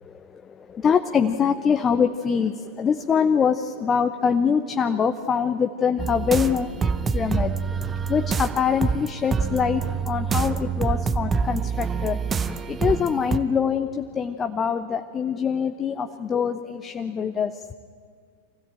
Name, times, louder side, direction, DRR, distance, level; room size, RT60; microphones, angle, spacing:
voice 1, 0.0-6.8 7.1-17.7, left 7 dB, 20° left, 9 dB, 0.8 m, -24 dB
sound 1, 6.0-13.4, right 5 dB, 20° right, 0.8 m, -26 dB
25.5 x 16.0 x 8.9 m, 2.1 s
figure-of-eight pair, 90°, 0 cm